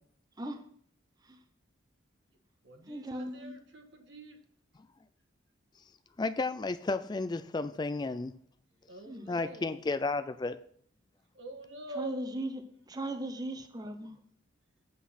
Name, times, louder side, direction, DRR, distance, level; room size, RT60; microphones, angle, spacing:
voice 1, 2.3-4.5 8.9-9.8 11.3-12.4, right 1 dB, 65° right, 5 dB, 1.5 m, -45 dB
voice 2, 2.9-3.5 9.1-9.3 12.0-12.5 12.9-14.1, right 1 dB, 20° right, 7 dB, 0.7 m, -37 dB
voice 3, 6.2-8.3 9.3-10.6, left 3 dB, 20° left, 12 dB, 0.3 m, -32 dB
8.2 x 7.8 x 4.2 m, 0.63 s
head